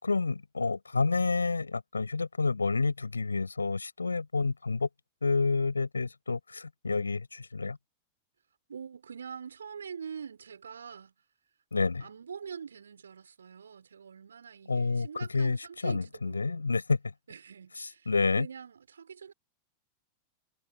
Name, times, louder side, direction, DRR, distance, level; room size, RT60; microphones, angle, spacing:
voice 1, 0.0-4.9 5.2-7.8 11.7-12.1 14.7-17.1 17.8-18.5, left 4 dB, 80° left, 4.5 m, -29 dB
voice 2, 8.7-11.1 12.0-16.7 17.3-19.3, right 6 dB, 70° right, 4.4 m, -44 dB
figure-of-eight pair, 90°, 0 cm